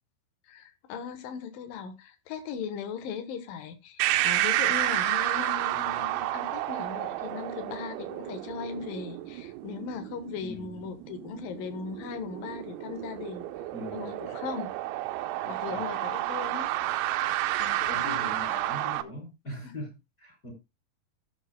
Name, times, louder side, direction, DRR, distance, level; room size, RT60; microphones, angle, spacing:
voice 1, 0.5-13.5 13.9-14.7 15.4-16.7 17.5-18.3 19.6-19.7, left 6 dB, 65° left, 2.4 m, -38 dB
sound 1, 4.0-19.0, right 15 dB, 85° right, 3.1 m, -31 dB
voice 2, 10.4-10.8 13.7-14.1 15.7-16.1 17.9-20.5, left 1 dB, 20° left, 4.5 m, -41 dB
18.5 x 7.2 x 2.2 m
omnidirectional pair, 5.4 m